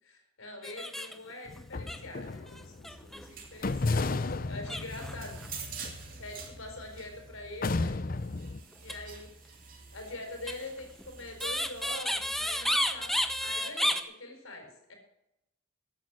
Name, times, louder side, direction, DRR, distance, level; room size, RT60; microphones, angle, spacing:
voice 1, 0.0-5.3 6.1-7.9 8.8-14.9, left 2 dB, 90° left, 3 dB, 4.6 m, -44 dB
sound 1, 0.6-1.3 1.6-1.7 1.9-3.3 3.8-4.0 4.7-5.5 8.7-9.0 10.5-14.0, equal, ahead, 0.8 m, -31 dB
sound 2, 1.5-2.9 3.6-7.0 7.6-8.6, left 3 dB, 45° left, 0.6 m, -33 dB
sound 3, 2.9-13.6, right 5 dB, 45° right, 2.7 m, -48 dB
14.5 x 9.0 x 6.2 m, 0.84 s
head